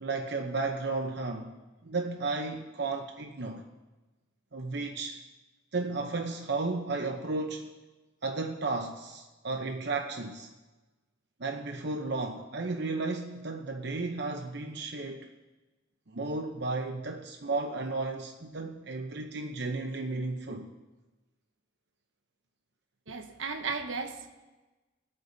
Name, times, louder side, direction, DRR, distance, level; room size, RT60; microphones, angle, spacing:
voice 1, 0.0-1.6 1.8-3.6 4.5-5.2 5.7-7.7 8.2-10.5 11.4-15.3 16.1-20.7, right 3 dB, 55° right, 4 dB, 0.9 m, -33 dB
voice 2, 23.1-24.3, right 4 dB, 80° right, 5 dB, 1.2 m, -35 dB
21.0 x 8.9 x 4.1 m, 1.2 s
head